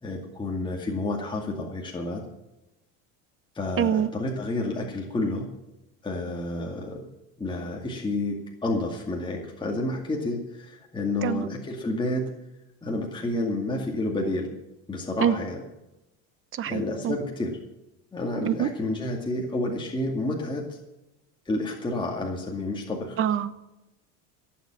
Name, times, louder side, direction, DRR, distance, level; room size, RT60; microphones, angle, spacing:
voice 1, 0.0-2.2 3.5-5.5 6.0-7.1 7.4-12.2 12.8-14.5 14.9-15.6 16.7-17.5 18.1-20.8 21.5-23.2, left 2 dB, 15° left, -1 dB, 2.2 m, -30 dB
voice 2, 3.8-4.1 11.2-11.5 15.2-15.3 16.5-17.2 18.4-18.7 23.2-23.5, right 9 dB, 35° right, 14 dB, 1.0 m, -25 dB
17.0 x 7.4 x 7.7 m, 0.98 s
supercardioid pair, 120°, 37 cm